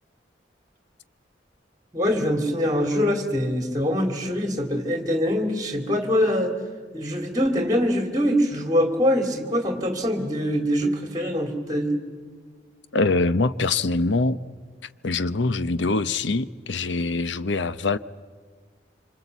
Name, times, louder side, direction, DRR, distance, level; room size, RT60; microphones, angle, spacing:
voice 1, 1.9-6.5 6.9-12.0, equal, 20° right, 6 dB, 2.8 m, -23 dB
voice 2, 12.9-14.4 15.0-18.0, left 3 dB, 80° left, 14 dB, 0.8 m, -23 dB
26.5 x 26.0 x 8.2 m, 1.5 s
head